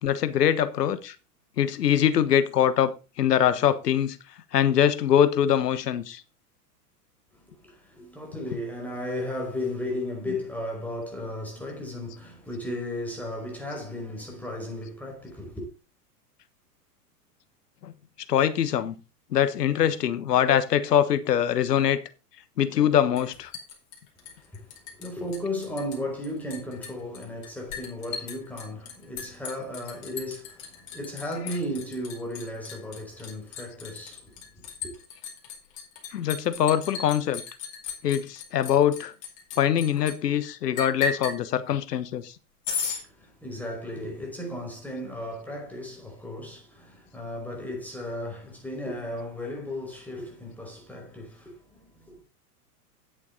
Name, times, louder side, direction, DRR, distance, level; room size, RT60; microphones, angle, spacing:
voice 1, 0.0-1.1 1.6-4.2 4.5-6.2 10.3-10.4 17.8-17.9 18.3-18.9 19.3-22.0 22.6-23.5 31.4-31.6 36.1-37.4 38.0-39.1 39.6-42.3, left 9 dB, 75° left, 1.3 m, -23 dB
voice 2, 7.3-15.7 24.2-34.9 43.0-52.2, left 1 dB, 5° left, 5.3 m, -35 dB
Liquid, 23.2-25.1 25.3-26.0 26.2-40.1 40.8-41.4 42.6-43.0, left 5 dB, 55° left, 4.6 m, -36 dB
10.0 x 8.3 x 4.0 m
hypercardioid pair, 110°, 48 cm